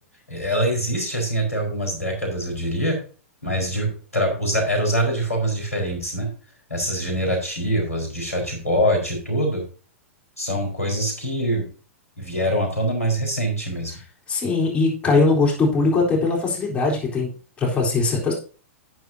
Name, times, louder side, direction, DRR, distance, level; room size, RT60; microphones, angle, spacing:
voice 1, 0.3-3.0 3.4-6.3 6.7-9.6 10.4-11.7 12.2-13.9, equal, 90° left, 2 dB, 4.6 m, -24 dB
voice 2, 14.3-17.3 17.6-18.3, left 3 dB, 15° left, -4 dB, 3.9 m, -20 dB
11.0 x 9.3 x 2.8 m, 0.38 s
figure-of-eight pair, 105°, 8 cm